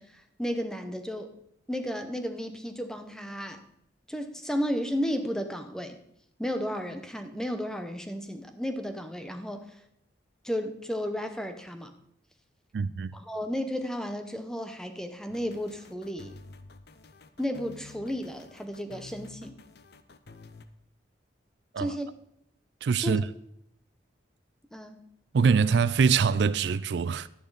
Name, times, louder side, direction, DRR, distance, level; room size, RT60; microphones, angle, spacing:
voice 1, 0.0-1.3 1.7-3.6 4.1-6.0 6.4-9.8 10.4-11.9 13.1-16.3 17.4-19.6 21.8-22.1 23.0-23.2 24.7-25.0, equal, 5° left, 0.8 m, -33 dB
voice 2, 12.7-13.2 21.7-22.0 22.8-23.2 25.3-27.3, right 5 dB, 65° right, 0.4 m, -24 dB
sound 1, 15.3-20.7, left 3 dB, 55° left, 0.7 m, -50 dB
11.5 x 10.5 x 4.0 m
head